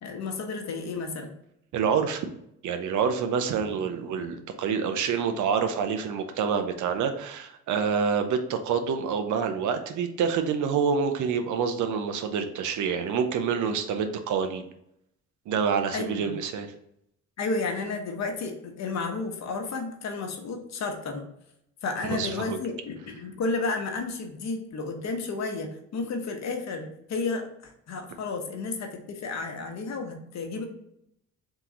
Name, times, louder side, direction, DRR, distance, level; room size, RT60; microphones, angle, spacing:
voice 1, 0.0-1.3 15.9-16.4 17.4-21.3 21.8-30.6, left 3 dB, 60° left, 4 dB, 1.0 m, -32 dB
voice 2, 1.7-2.3 2.6-14.6 15.5-16.7 22.0-22.6, right 6 dB, 75° right, 7 dB, 0.6 m, -27 dB
3.7 x 3.0 x 3.8 m, 0.76 s
cardioid pair, 90°, 30 cm